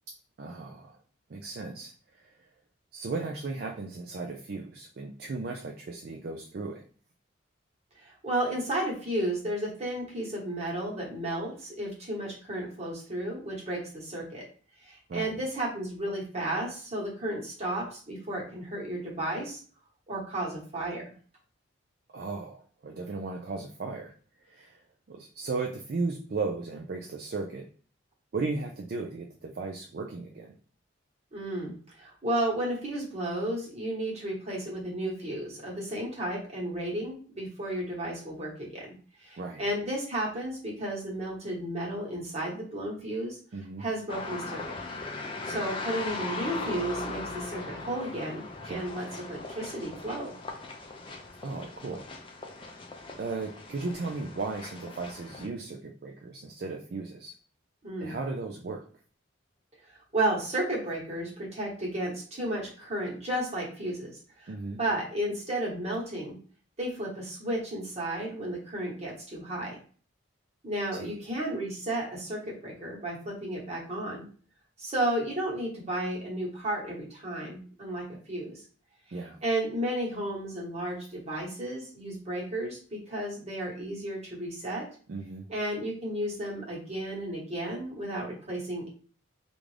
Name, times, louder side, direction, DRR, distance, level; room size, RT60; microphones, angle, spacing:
voice 1, 0.4-1.0 1.3-2.4 2.9-6.8 15.1-15.4 22.1-24.1 24.4-24.8 25.1-27.7 28.3-30.5 39.4-39.6 43.5-43.8 48.6-48.8 51.4-52.1 52.5-52.7 53.2-57.4 58.0-58.9 64.5-64.8 70.9-71.2 79.1-79.4 85.1-85.5, right 3 dB, 50° right, 2 dB, 0.4 m, -36 dB
voice 2, 8.0-14.4 14.8-19.6 20.1-21.0 31.3-38.9 39.2-43.4 43.8-44.7 45.4-50.3 57.8-58.1 59.9-64.5 64.8-66.4 66.8-69.8 70.6-74.3 74.8-78.6 79.4-84.9 85.5-88.9, right 1 dB, 30° right, -4 dB, 1.3 m, -33 dB
sound 1, 44.1-55.5, left 3 dB, 25° left, 0.4 m, -39 dB
3.5 x 2.5 x 3.2 m, 0.42 s
head